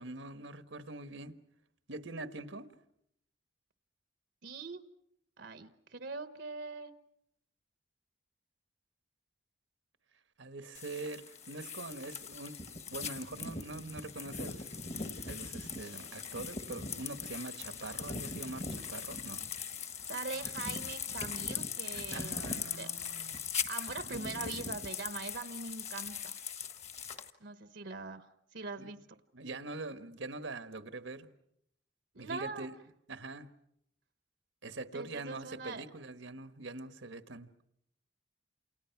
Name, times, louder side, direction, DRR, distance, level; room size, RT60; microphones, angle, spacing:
voice 1, 0.0-1.4 1.9-2.7 10.4-14.7 15.1-19.4 22.1-23.4 24.0-24.4 28.8-28.9 29.3-31.3 32.2-32.7 33.1-33.5 34.6-37.5, right 2 dB, 85° right, 10 dB, 1.4 m, -43 dB
voice 2, 4.4-4.9 5.4-6.9 20.1-22.9 23.7-26.4 27.4-29.1 32.1-32.7 34.9-35.8, right 4 dB, 70° right, 11 dB, 1.0 m, -42 dB
sound 1, 10.7-27.3, left 6 dB, 35° left, 1.4 m, -40 dB
29.0 x 28.5 x 5.9 m, 0.75 s
head